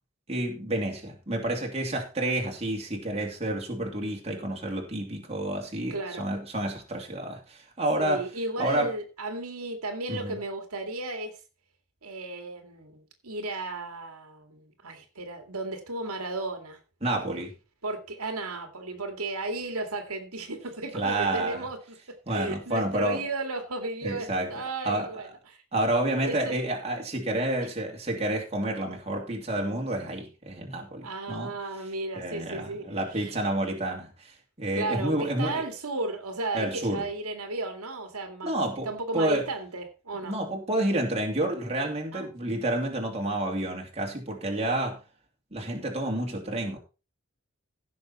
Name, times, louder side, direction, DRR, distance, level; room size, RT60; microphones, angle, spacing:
voice 1, 0.3-8.3 8.6-8.9 10.1-10.4 17.0-17.5 20.9-21.6 22.3-23.3 24.0-24.5 24.8-25.1 25.7-31.5 32.1-35.6 36.5-37.0 38.4-38.9 39.1-39.4 40.2-45.0 45.5-46.8, right 1 dB, 30° right, 2.7 m, -29 dB
voice 2, 5.9-6.3 8.0-11.4 12.0-16.8 17.8-21.8 22.1-25.6 26.2-26.5 27.6-27.7 31.0-33.3 34.7-38.5 38.8-40.3 42.1-42.3, right 2 dB, 85° right, 2.3 m, -34 dB
16.0 x 6.4 x 4.2 m
head